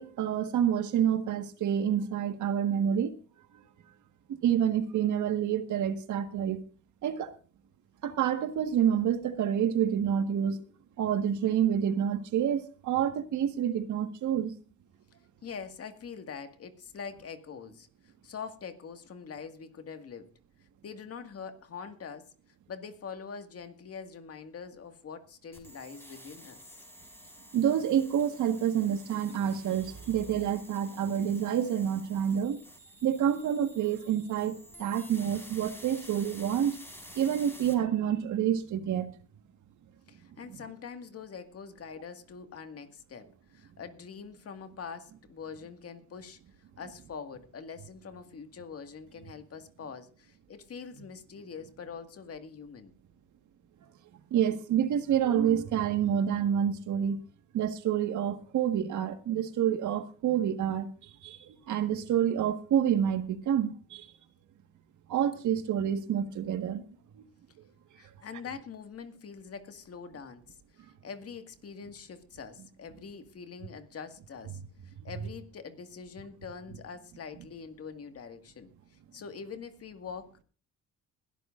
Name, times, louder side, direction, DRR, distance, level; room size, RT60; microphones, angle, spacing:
voice 1, 0.0-3.1 4.4-6.6 7.0-7.3 8.0-10.6 11.0-14.5 27.5-32.6 33.0-36.8 37.1-39.1 54.3-57.2 57.5-64.0 65.1-66.8, right 9 dB, 75° right, 1.6 m, -28 dB
voice 2, 15.4-20.3 20.8-22.3 22.7-26.6 40.1-46.4 46.8-52.9 68.0-80.4, left 6 dB, 50° left, 2.0 m, -44 dB
sound 1, 25.5-37.7, equal, 5° left, 4.8 m, -50 dB
21.0 x 13.0 x 2.6 m
cardioid pair, 90°, 30 cm